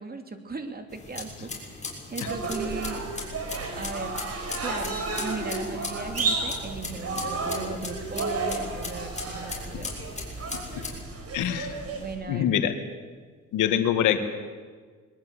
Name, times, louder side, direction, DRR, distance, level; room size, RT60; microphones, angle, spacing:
voice 1, 0.0-1.8 2.1-3.0 3.7-4.1 4.6-9.9 11.8-12.5, right 4 dB, 30° right, 6 dB, 3.0 m, -37 dB
sound 1, 0.9-11.0, left 3 dB, 25° left, 6.7 m, -39 dB
sound 2, 2.2-12.1, right 3 dB, 55° right, 5.6 m, -32 dB
voice 2, 11.3-11.8 12.3-12.7 13.5-14.2, left 10 dB, 90° left, 8 dB, 2.0 m, -24 dB
21.5 x 20.0 x 8.3 m, 1.6 s
cardioid pair, 90°, 30 cm